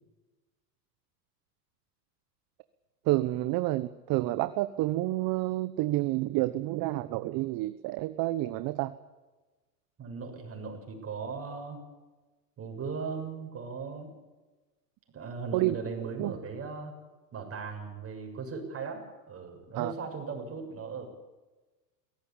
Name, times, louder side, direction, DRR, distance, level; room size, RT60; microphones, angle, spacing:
voice 1, 3.0-8.9 15.5-15.8 16.2-16.3 19.7-19.9, right 17 dB, 45° right, 13 dB, 1.2 m, -29 dB
voice 2, 10.0-11.8 12.6-14.1 15.1-17.0 17.3-21.1, right 5 dB, 25° right, 4 dB, 6.9 m, -38 dB
22.5 x 17.5 x 8.8 m, 1.2 s
hypercardioid pair, 100°, 49 cm